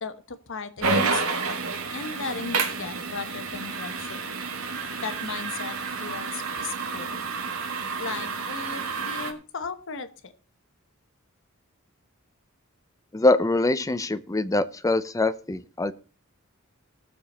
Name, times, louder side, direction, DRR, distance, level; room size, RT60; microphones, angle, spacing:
voice 1, 0.0-1.4 1.9-4.2 5.0-7.2 8.0-10.3, left 4 dB, 60° left, 11 dB, 1.0 m, -36 dB
sound 1, 0.8-9.3, right 4 dB, 85° right, 1.8 m, -30 dB
voice 2, 13.1-15.9, left 2 dB, 15° left, 14 dB, 0.5 m, -23 dB
18.0 x 6.9 x 4.2 m, 0.37 s
head